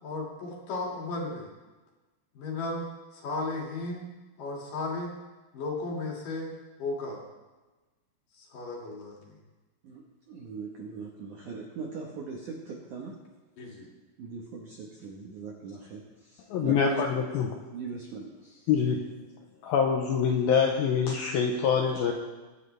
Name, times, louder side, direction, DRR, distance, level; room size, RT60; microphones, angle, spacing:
voice 1, 0.0-1.5 2.3-2.9 3.1-4.1 4.4-5.1 5.5-6.5 6.8-7.2 8.3-9.2 13.6-13.9, left 2 dB, 50° left, -2 dB, 3.5 m, -34 dB
voice 2, 10.3-13.1 14.2-16.0 16.3-17.0 17.7-18.7, right 4 dB, 70° right, -1 dB, 1.8 m, -40 dB
voice 3, 16.5-17.5 18.7-19.0 19.6-22.1, left 6 dB, 90° left, 1 dB, 2.1 m, -25 dB
23.5 x 11.0 x 3.4 m, 1.2 s
omnidirectional pair, 5.6 m